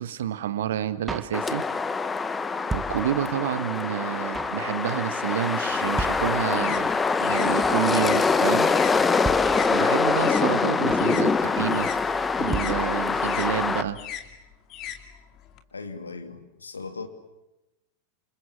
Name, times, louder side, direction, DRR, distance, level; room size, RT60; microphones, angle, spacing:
voice 1, 0.0-1.6 2.7-6.9 7.2-8.7 9.6-11.9 12.4-14.0, right 10 dB, 60° right, 13 dB, 1.5 m, -29 dB
Drum kit, 1.1-1.9 2.2-2.3 2.4-3.5 3.8-3.9 4.1-4.6 4.9-5.2 5.4-5.5 5.7-5.8 6.0-6.8 7.1-7.2 7.3-7.9 8.2-8.4 8.7-8.8 9.0-9.1 9.2-10.1 10.3-10.4 10.6-11.2 11.4-11.7 12.0-12.1 12.3-12.4 12.5-13.4 13.6-13.7 13.9-14.0, right 3 dB, 15° right, 1.3 m, -34 dB
sound 1, 1.3-13.8, left 4 dB, 15° left, 1.2 m, -24 dB
sound 2, 5.8-10.5 10.8-15.6, left 10 dB, 35° left, 2.7 m, -39 dB
voice 2, 10.2-10.6 15.7-17.1, left 4 dB, 75° left, 7 dB, 2.5 m, -38 dB
28.5 x 27.5 x 7.4 m, 0.97 s
figure-of-eight pair, 90°, 0 cm